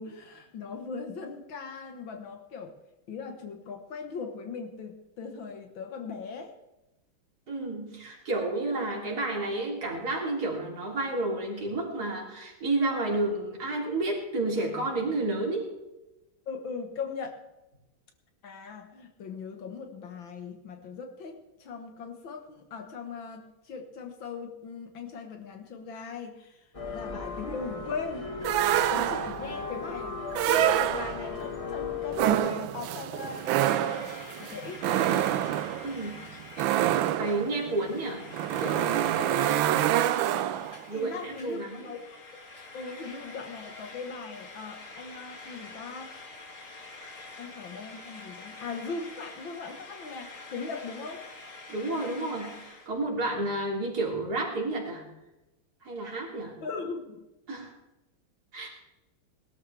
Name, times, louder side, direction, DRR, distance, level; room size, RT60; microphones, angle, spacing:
voice 1, 0.0-2.7 3.1-6.5 16.5-17.4 18.4-28.3 28.9-35.4 39.2-39.4 40.9-42.0 42.7-46.1 47.4-51.2 56.6-57.2, left 5 dB, 65° left, 4 dB, 2.1 m, -39 dB
voice 2, 7.5-15.7 35.8-36.3 37.2-38.3 38.6-39.0 40.6-41.8 51.7-55.1 55.8-56.6 57.5-57.7 58.5-58.7, right 2 dB, 45° right, -2 dB, 3.7 m, -31 dB
sound 1, 26.7-32.4, left 4 dB, 20° left, 0.9 m, -36 dB
sound 2, 28.4-29.5 30.3-31.4 32.1-40.8, right 12 dB, 75° right, 1.3 m, -27 dB
Frying (food), 33.2-52.9, left 3 dB, 40° left, 2.0 m, -47 dB
20.5 x 12.5 x 3.4 m, 0.98 s
omnidirectional pair, 2.3 m